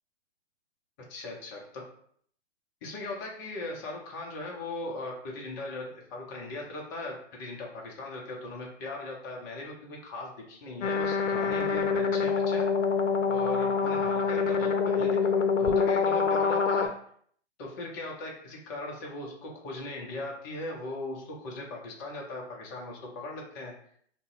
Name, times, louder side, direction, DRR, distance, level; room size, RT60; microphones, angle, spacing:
voice 1, 1.1-1.9 2.8-12.7 13.3-16.9 17.6-23.7, left 2 dB, 15° left, -1 dB, 0.4 m, -39 dB
sound 1, 10.8-16.9, left 5 dB, 85° left, 0.5 m, -26 dB
2.6 x 2.0 x 3.7 m, 0.62 s
hypercardioid pair, 130°, 36 cm